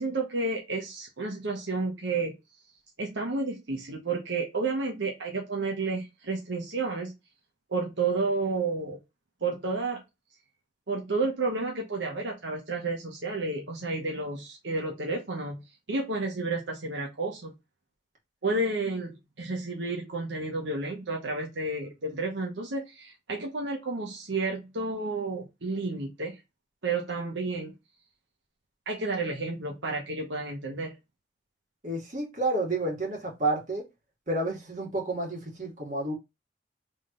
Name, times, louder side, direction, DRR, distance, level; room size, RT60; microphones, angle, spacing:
voice 1, 0.0-2.3 3.0-7.1 7.7-9.0 9.4-10.0 10.9-17.5 18.4-26.4 26.8-27.7 28.9-30.9, right 3 dB, 85° right, 1.1 m, -31 dB
voice 2, 31.8-33.8 34.3-36.1, right 2 dB, 45° right, 2.0 m, -30 dB
3.7 x 3.3 x 3.8 m
head